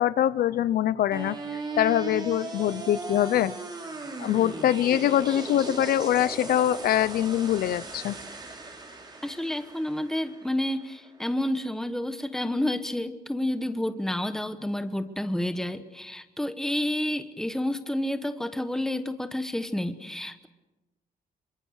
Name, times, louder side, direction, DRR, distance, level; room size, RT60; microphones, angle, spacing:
voice 1, 0.0-1.4 1.8-3.5 4.2-8.1, left 11 dB, 80° left, 16 dB, 0.7 m, -24 dB
sound 1, 1.1-11.1, right 3 dB, 30° right, 3.9 m, -38 dB
voice 2, 9.2-20.5, left 1 dB, 5° left, 10 dB, 1.2 m, -30 dB
27.5 x 24.5 x 6.5 m, 1.1 s
wide cardioid pair, 165°, 15 cm